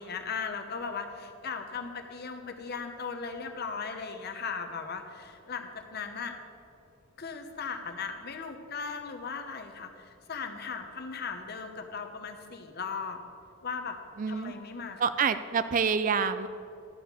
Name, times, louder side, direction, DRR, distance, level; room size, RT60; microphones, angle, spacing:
voice 1, 0.0-6.4 7.2-13.2 13.6-14.0 14.3-15.0, left 5 dB, 50° left, 5 dB, 0.9 m, -37 dB
voice 2, 14.2-14.5 15.0-16.5, right 6 dB, 40° right, 12 dB, 0.3 m, -27 dB
12.5 x 4.3 x 8.1 m, 2.6 s
head